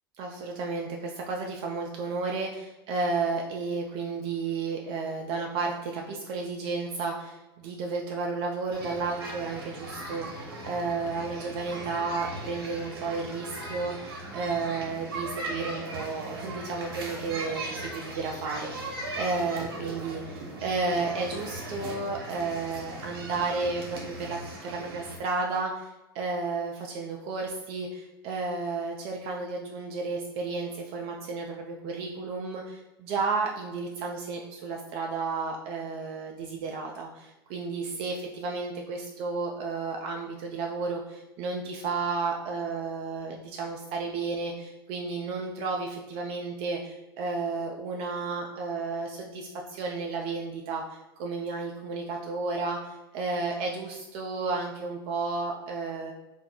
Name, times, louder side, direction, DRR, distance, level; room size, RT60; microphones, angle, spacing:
voice 1, 0.2-56.1, right 4 dB, 50° right, 0 dB, 0.4 m, -32 dB
sound 1, 8.7-25.2, right 2 dB, 80° right, 0.8 m, -39 dB
2.2 x 2.0 x 3.7 m, 1.0 s
hypercardioid pair, 95°, 13 cm